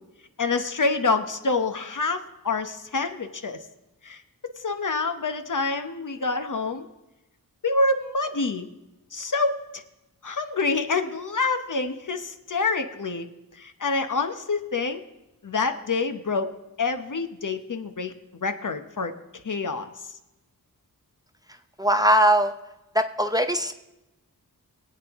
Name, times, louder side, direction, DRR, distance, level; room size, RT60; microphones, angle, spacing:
voice 1, 0.4-3.6 4.0-4.2 4.6-6.8 7.6-8.7 9.1-9.8 10.2-13.3 13.6-15.0 15.4-18.1 18.4-19.1 19.4-19.9, left 3 dB, 60° left, 7 dB, 0.9 m, -27 dB
voice 2, 21.8-22.5 22.9-23.7, equal, 10° right, 7 dB, 0.7 m, -20 dB
22.5 x 8.7 x 3.6 m, 1.0 s
wide cardioid pair, 65°, 35 cm